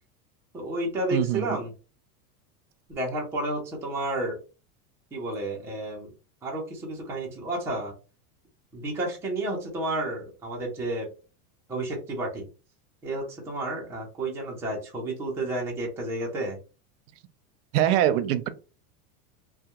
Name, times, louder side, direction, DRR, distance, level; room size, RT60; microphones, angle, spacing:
voice 1, 0.5-1.7 2.9-4.4 5.1-6.1 6.4-7.9 8.7-11.1 11.7-12.5 13.0-16.6, right 1 dB, 5° right, -3 dB, 0.4 m, -31 dB
voice 2, 1.1-1.6 17.7-18.5, right 12 dB, 75° right, 11 dB, 0.5 m, -23 dB
2.2 x 2.2 x 2.8 m, 0.34 s
supercardioid pair, 140°, 46 cm